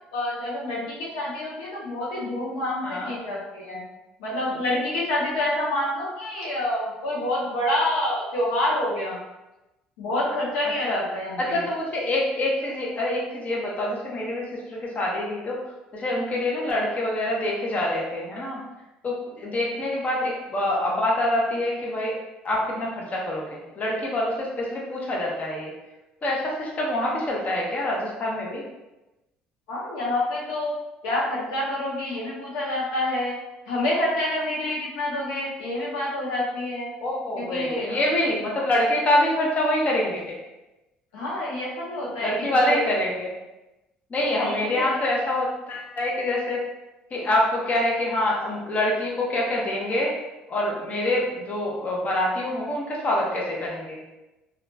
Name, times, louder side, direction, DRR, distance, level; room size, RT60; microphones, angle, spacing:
voice 1, 0.1-3.8 4.2-9.2 10.0-11.6 29.7-30.7 31.0-33.3 33.7-36.9 37.4-38.0 41.1-43.0 44.4-45.0, left 1 dB, 85° left, -5 dB, 0.7 m, -27 dB
voice 2, 11.4-15.6 15.9-18.6 19.0-22.2 22.4-25.7 26.2-28.6 37.0-40.3 42.2-43.3 44.1-46.6 47.1-50.1 50.5-54.0, left 1 dB, 40° left, -3 dB, 0.8 m, -25 dB
2.9 x 2.4 x 2.2 m, 1.0 s
supercardioid pair, 75°, 4 cm